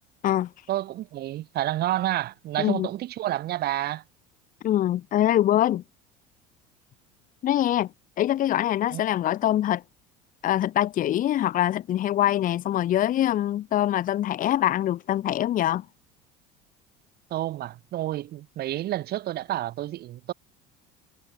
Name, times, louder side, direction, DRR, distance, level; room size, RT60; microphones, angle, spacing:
voice 1, 0.7-4.0 8.9-9.0 17.3-20.3, right 14 dB, 55° right, 4.7 m, -29 dB
voice 2, 4.6-5.8 7.4-7.9 8.2-9.8 10.4-15.8, left 12 dB, 45° left, 1.0 m, -24 dB
supercardioid pair, 100°, 19 cm